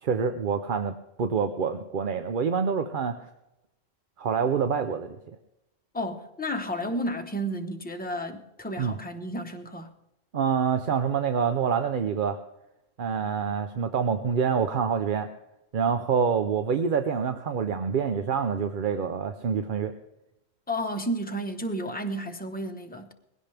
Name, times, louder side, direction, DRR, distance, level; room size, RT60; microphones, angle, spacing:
voice 1, 0.0-3.3 4.2-5.2 8.8-9.0 10.3-12.4 13.0-15.3 15.7-19.9, right 6 dB, 50° right, 0.8 m, -26 dB
voice 2, 5.9-9.9 20.7-23.1, equal, 10° left, 1.0 m, -32 dB
20.0 x 16.5 x 3.4 m
omnidirectional pair, 1.1 m